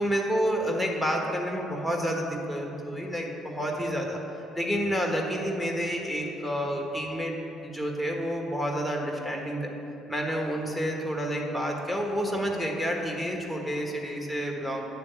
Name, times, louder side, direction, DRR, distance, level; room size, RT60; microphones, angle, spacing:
voice 1, 0.0-4.2 4.5-7.3 7.6-9.7 10.1-14.8, equal, 5° left, 0 dB, 1.4 m, -29 dB
9.4 x 3.5 x 6.9 m, 2.9 s
hypercardioid pair, 60°, 0 cm